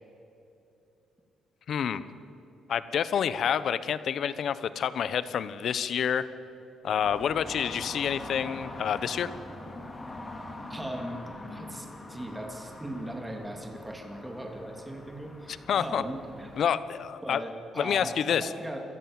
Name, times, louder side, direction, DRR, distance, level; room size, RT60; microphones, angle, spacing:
voice 1, 1.7-2.0 2.7-6.3 6.8-9.3 15.7-16.0 16.6-17.4 17.8-18.5, left 8 dB, 65° left, 14 dB, 1.0 m, -28 dB
sound 1, 7.0-16.7, left 2 dB, 20° left, 2.7 m, -43 dB
voice 2, 10.7-11.2 11.5-16.7 17.2-18.8, right 1 dB, 10° right, 2 dB, 2.9 m, -39 dB
23.5 x 14.0 x 8.8 m, 2.9 s
cardioid pair, 90°, 0 cm